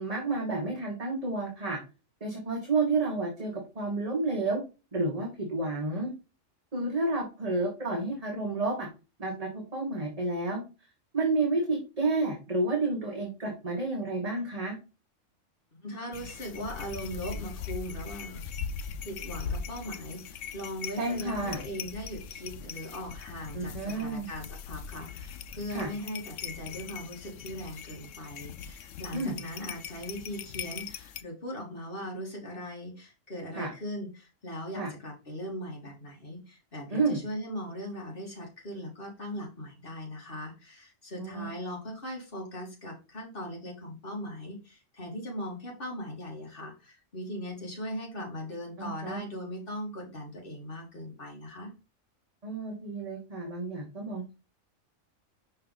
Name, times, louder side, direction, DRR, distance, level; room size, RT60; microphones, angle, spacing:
voice 1, 0.0-1.8 2.2-4.6 4.9-6.1 6.7-8.9 9.2-10.6 11.1-14.8 21.0-21.6 23.5-24.3 25.7-25.9 29.1-29.3 33.5-33.7 34.7-34.9 36.9-37.2 41.2-41.5 48.8-49.2 52.4-54.3, right 3 dB, 30° right, -1 dB, 1.3 m, -30 dB
voice 2, 15.8-18.4 19.0-51.7, equal, 45° left, -1 dB, 2.4 m, -39 dB
sound 1, 16.1-31.2, left 7 dB, 75° left, 0.9 m, -40 dB
5.6 x 4.4 x 3.9 m, 0.30 s
omnidirectional pair, 1.3 m